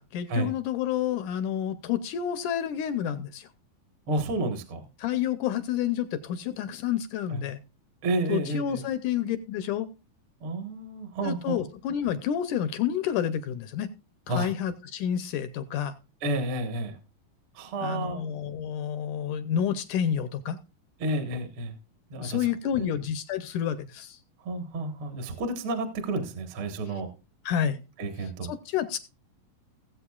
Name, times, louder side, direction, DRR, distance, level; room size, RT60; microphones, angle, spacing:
voice 1, 0.0-3.5 5.0-7.6 8.3-9.9 11.2-13.9 14.3-16.0 17.8-20.6 22.2-24.2 27.5-27.8 28.2-29.0, left 9 dB, 75° left, 12 dB, 1.9 m, -29 dB
voice 2, 4.1-4.9 7.3-7.4 8.0-8.8 10.4-11.6 14.3-14.5 16.2-16.9 17.5-18.2 21.0-21.7 22.1-22.5 22.8-22.9 24.4-27.1 28.0-28.5, right 2 dB, 50° right, 6 dB, 1.7 m, -30 dB
19.0 x 7.8 x 2.4 m, 0.32 s
omnidirectional pair, 4.1 m